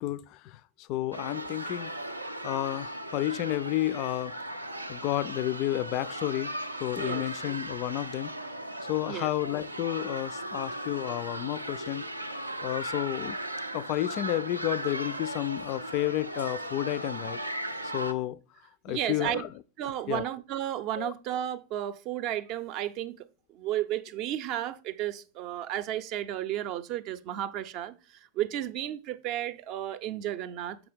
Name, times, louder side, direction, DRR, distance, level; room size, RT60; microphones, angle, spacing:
voice 1, 0.0-1.9 2.4-4.3 4.6-6.5 6.8-8.3 8.9-12.0 12.6-13.4 13.7-17.4 17.8-18.4 18.8-19.5 20.1-20.2 21.0-21.1, left 14 dB, 40° left, 0.3 m, -31 dB
sound 1, 1.1-18.1, right 1 dB, 85° right, 0.5 m, -37 dB
voice 2, 18.9-19.5 19.8-30.8, right 12 dB, 40° right, 0.5 m, -33 dB
7.0 x 6.1 x 3.3 m
figure-of-eight pair, 90°, 0 cm